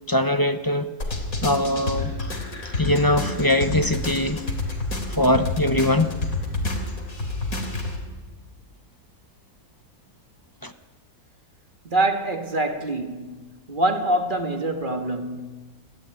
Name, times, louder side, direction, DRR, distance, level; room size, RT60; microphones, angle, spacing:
voice 1, 0.1-0.9 1.4-2.1 2.8-4.4 5.2-6.1 10.6-10.7, left 1 dB, 20° left, 0.6 m, -21 dB
sound 1, 1.0-8.0, left 2 dB, 65° left, 3.7 m, -29 dB
voice 2, 11.8-13.4 13.7-15.5, right 2 dB, 35° right, 1.8 m, -25 dB
29.5 x 13.5 x 9.0 m
omnidirectional pair, 1.6 m